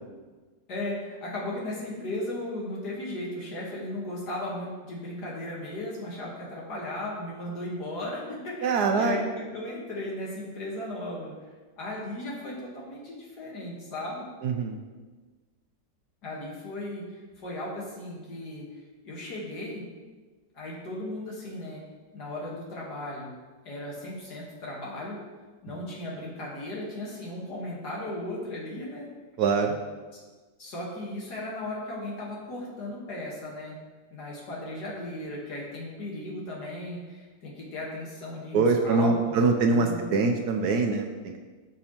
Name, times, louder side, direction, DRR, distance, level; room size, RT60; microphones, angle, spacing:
voice 1, 0.7-11.3 11.8-14.2 16.2-18.7 19.0-19.9 20.5-21.8 22.1-23.3 23.7-25.2 25.6-29.1 30.1-30.2 30.6-33.8 34.1-40.1, left 1 dB, 70° left, -4 dB, 2.0 m, -36 dB
voice 2, 8.6-9.2 14.4-14.8 29.4-29.8 38.5-41.4, right 4 dB, 75° right, 4 dB, 1.1 m, -24 dB
12.5 x 5.3 x 2.9 m, 1.3 s
omnidirectional pair, 1.8 m